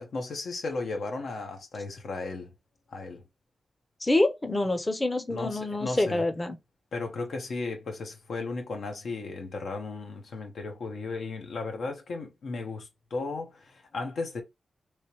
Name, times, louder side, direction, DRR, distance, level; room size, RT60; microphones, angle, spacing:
voice 1, 0.0-2.5 2.9-3.2 5.3-6.2 6.9-14.4, left 3 dB, 90° left, 0.9 m, -35 dB
voice 2, 4.0-6.6, left 2 dB, 20° left, 0.5 m, -26 dB
3.1 x 3.0 x 2.8 m
wide cardioid pair, 110°, 0 cm